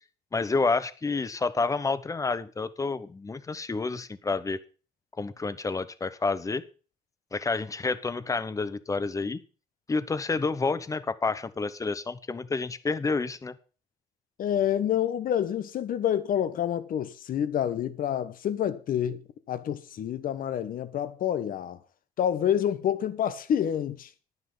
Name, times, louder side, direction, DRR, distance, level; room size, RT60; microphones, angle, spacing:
voice 1, 0.3-4.6 5.2-6.6 7.3-9.4 9.9-13.6, left 4 dB, 20° left, 0.9 m, -29 dB
voice 2, 14.4-19.2 19.5-21.8 22.2-24.1, left 10 dB, 55° left, 1.3 m, -28 dB
10.5 x 9.7 x 5.6 m
cardioid pair, 110°, 17 cm